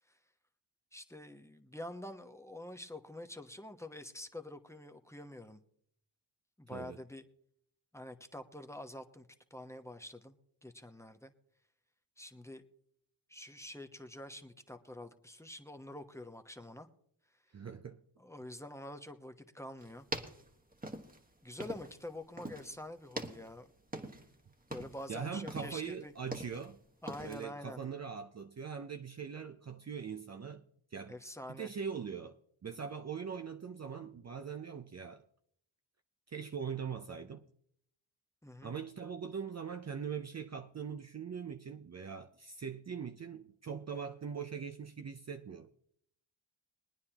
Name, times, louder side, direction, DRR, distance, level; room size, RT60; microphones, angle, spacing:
voice 1, 0.9-5.6 6.6-7.2 7.9-10.3 10.6-11.3 12.2-12.6 13.3-16.9 18.2-20.1 21.4-23.7 24.7-26.1 27.0-27.8 31.1-31.7 38.4-38.7, left 1 dB, 5° left, 1.1 m, -47 dB
voice 2, 17.5-18.0 25.1-26.8 27.2-31.2 31.5-35.3 36.3-37.4 38.6-45.7, right 6 dB, 35° right, 0.6 m, -42 dB
sound 1, 19.8-22.1 22.4-22.8 23.1-24.4 24.6-25.1 25.5-26.7 27.1-27.4, right 1 dB, 20° right, 1.4 m, -43 dB
22.5 x 9.5 x 2.9 m
cardioid pair, 65°, 47 cm